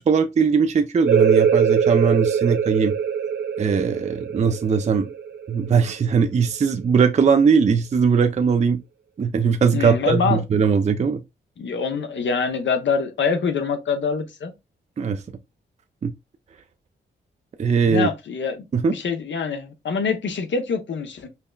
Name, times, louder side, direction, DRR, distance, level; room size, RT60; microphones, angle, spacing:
voice 1, 0.0-2.9 3.6-5.1 5.5-8.8 9.2-11.2 15.0-15.2 16.0-16.1 17.6-18.1 18.7-18.9, right 6 dB, 35° right, 0.4 m, -20 dB
sound 1, 1.0-6.4, right 7 dB, 60° right, 0.7 m, -22 dB
voice 2, 9.7-10.4 11.6-14.5 17.9-21.3, left 5 dB, 65° left, 0.8 m, -25 dB
5.6 x 2.1 x 2.2 m
cardioid pair, 55°, 20 cm